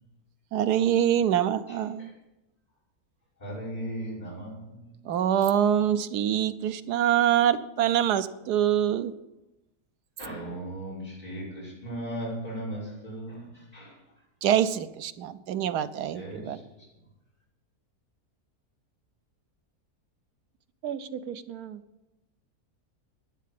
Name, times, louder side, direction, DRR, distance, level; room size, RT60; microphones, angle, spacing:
voice 1, 0.5-2.1 5.1-9.1 14.4-16.6, right 10 dB, 90° right, 13 dB, 1.3 m, -25 dB
voice 2, 1.7-2.1 3.4-5.0 10.2-14.0 16.1-16.9, right 1 dB, 25° left, -6 dB, 6.0 m, -37 dB
voice 3, 20.8-21.8, right 8 dB, 70° right, 10 dB, 1.3 m, -36 dB
12.0 x 10.5 x 7.7 m, 0.97 s
omnidirectional pair, 1.7 m